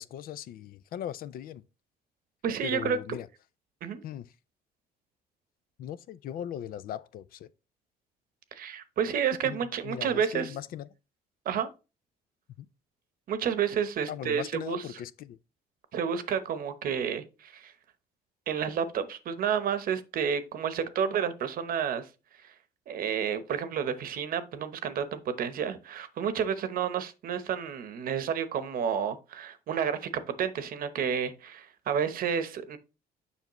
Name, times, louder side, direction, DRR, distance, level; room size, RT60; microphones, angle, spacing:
voice 1, 0.0-1.6 2.6-3.3 4.0-4.3 5.8-7.5 9.4-10.9 12.6-12.7 14.1-15.4, left 10 dB, 60° left, 0.5 m, -39 dB
voice 2, 2.4-3.0 3.8-4.0 8.6-10.6 11.4-11.7 13.3-14.8 15.9-17.7 18.5-22.1 22.4-22.5 22.9-30.1 30.4-32.8, right 7 dB, 60° right, 0.9 m, -30 dB
7.1 x 5.4 x 3.0 m
cardioid pair, 110°, 17 cm